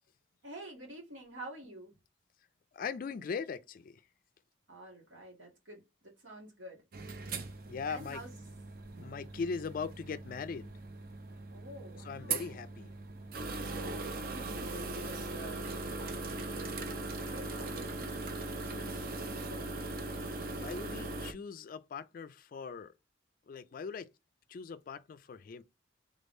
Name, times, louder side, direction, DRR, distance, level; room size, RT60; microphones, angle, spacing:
voice 1, 0.4-1.9 4.7-6.8 7.9-8.4 11.5-12.6 13.6-16.9 17.3-19.7, right 1 dB, 85° right, 1.9 m, -49 dB
voice 2, 2.7-4.0 7.7-8.2 9.0-10.7 12.0-12.9 20.5-22.9 23.5-24.1 24.5-25.6, left 5 dB, 45° left, 0.3 m, -40 dB
sound 1, 6.9-21.3, right 3 dB, 50° right, 0.6 m, -40 dB
3.6 x 3.5 x 2.6 m
head